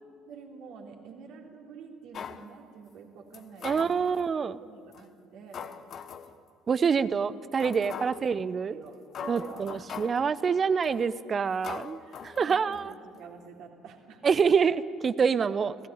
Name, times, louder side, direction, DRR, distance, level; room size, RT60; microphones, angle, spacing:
voice 1, 0.3-4.1 4.6-5.7 7.0-7.1 8.1-8.2 8.7-10.6 12.0-14.5 15.4-15.5, right 5 dB, 55° right, 2 dB, 3.2 m, -48 dB
sound 1, 2.1-2.5 3.3-4.3 4.9-5.0 5.5-6.3 6.8-6.9 7.6-8.3 8.9-9.0 9.1-10.3 10.8-11.1 11.6-12.9 13.2-13.3, left 7 dB, 45° left, 1.2 m, -41 dB
voice 2, 3.6-4.6 6.7-8.8 9.3-12.9 14.2-15.7, right 6 dB, 35° right, 16 dB, 0.8 m, -26 dB
30.0 x 17.0 x 8.7 m, 2.4 s
figure-of-eight pair, 55°, 0 cm